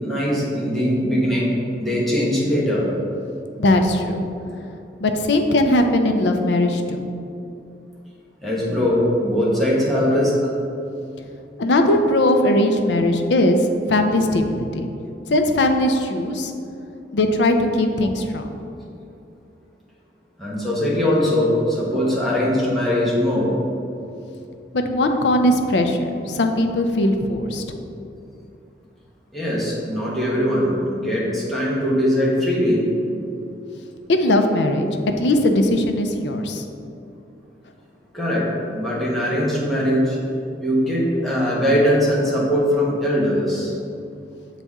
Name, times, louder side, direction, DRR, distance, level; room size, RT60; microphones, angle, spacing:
voice 1, 0.0-2.9 8.4-10.3 20.4-23.5 29.3-32.8 38.1-38.4 38.7-40.2 40.6-43.7, equal, ahead, -7 dB, 1.2 m, -21 dB
voice 2, 3.6-4.3 5.0-7.1 11.6-13.6 13.9-14.9 15.3-16.5 17.1-18.5 24.7-27.8 34.1-34.9 35.2-36.6, left 1 dB, 75° left, 5 dB, 0.5 m, -19 dB
6.9 x 4.1 x 3.6 m, 2.7 s
head